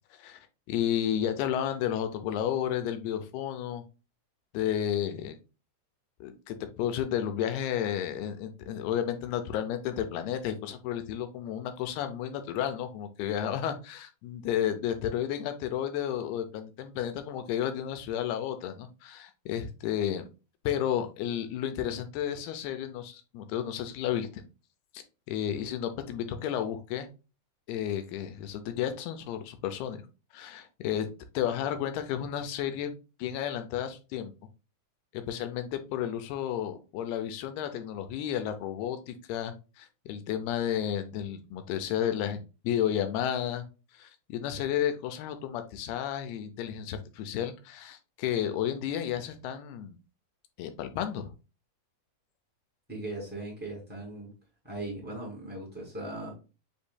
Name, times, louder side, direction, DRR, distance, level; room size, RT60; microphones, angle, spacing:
voice 1, 0.7-3.8 4.5-5.4 6.2-20.3 20.6-24.3 25.3-27.1 27.7-30.0 30.3-32.9 33.2-34.3 35.1-43.6 44.0-50.0 50.6-51.3, left 10 dB, 80° left, 8 dB, 2.6 m, -32 dB
voice 2, 52.9-54.3 54.6-56.3, right 2 dB, 5° right, -3 dB, 1.2 m, -38 dB
7.0 x 3.1 x 2.2 m, 0.30 s
omnidirectional pair, 4.6 m